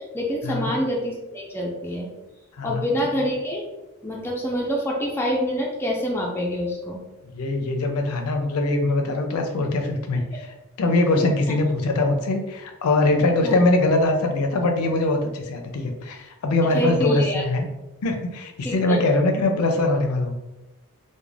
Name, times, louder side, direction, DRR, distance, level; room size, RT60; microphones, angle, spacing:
voice 1, 0.0-2.1 2.6-3.6 4.0-7.0 13.4-13.6 16.7-17.4 18.6-19.1, equal, 10° left, -3 dB, 0.4 m, -26 dB
voice 2, 7.3-17.7 18.0-20.3, left 2 dB, 80° left, 4 dB, 0.4 m, -22 dB
2.4 x 2.1 x 3.2 m, 1.0 s
head